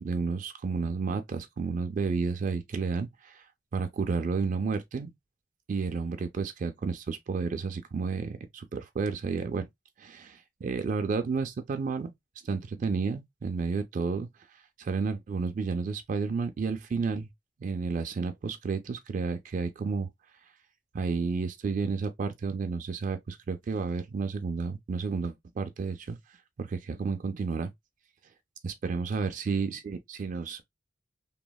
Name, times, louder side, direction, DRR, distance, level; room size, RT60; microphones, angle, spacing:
voice 1, 0.0-3.4 3.7-5.1 5.7-9.7 10.0-12.1 12.5-14.3 14.8-17.3 17.6-20.1 20.9-26.2 26.6-27.7 28.6-30.6, right 4 dB, 45° right, 0.3 m, -31 dB
3.0 x 2.0 x 2.2 m
head